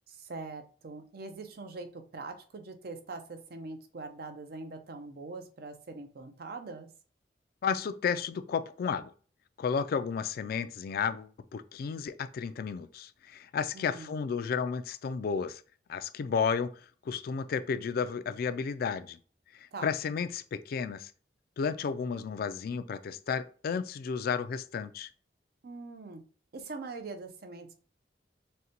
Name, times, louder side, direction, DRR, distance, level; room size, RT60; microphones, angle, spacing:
voice 1, 0.1-6.9 13.7-14.2 19.7-19.9 25.6-26.2 26.5-27.7, right 3 dB, 60° right, 7 dB, 0.6 m, -43 dB
voice 2, 7.6-9.1 9.6-15.6 15.9-19.2 19.5-21.1 21.6-25.1, left 6 dB, 55° left, 12 dB, 0.3 m, -32 dB
6.4 x 2.2 x 2.8 m, 0.41 s
head